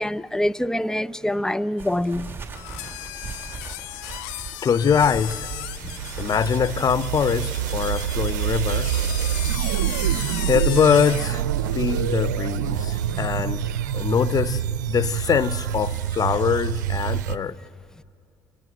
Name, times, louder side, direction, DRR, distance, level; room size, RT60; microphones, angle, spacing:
voice 1, 0.0-2.3 13.2-13.5, left 1 dB, 5° left, 0.6 m, -25 dB
sound 1, 1.8-11.1, right 5 dB, 25° right, 3.1 m, -41 dB
sound 2, 2.5-11.4, left 20 dB, 80° left, 0.5 m, -36 dB
Fire huge lazer, 4.5-17.4, right 11 dB, 85° right, 0.6 m, -26 dB
voice 2, 4.6-5.5 6.2-8.9 10.5-11.4 11.7-13.6 13.9-17.6, left 7 dB, 40° left, 0.7 m, -23 dB
28.0 x 26.5 x 6.4 m
hypercardioid pair, 60°, 10 cm